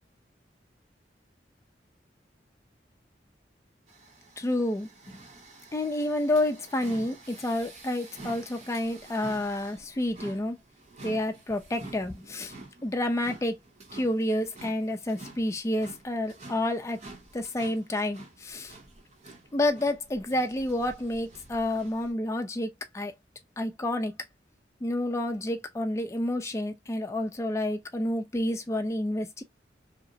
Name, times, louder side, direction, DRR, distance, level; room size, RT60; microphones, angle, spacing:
sound 1, 3.9-22.1, right 2 dB, 40° right, 0.8 m, -49 dB
voice 1, 4.4-4.9 5.7-10.6 11.0-12.5 12.8-13.6 13.9-17.0 17.3-18.7 19.5-23.1 23.6-24.1 24.8-29.4, left 1 dB, 15° left, 0.4 m, -29 dB
2.8 x 2.0 x 2.6 m
head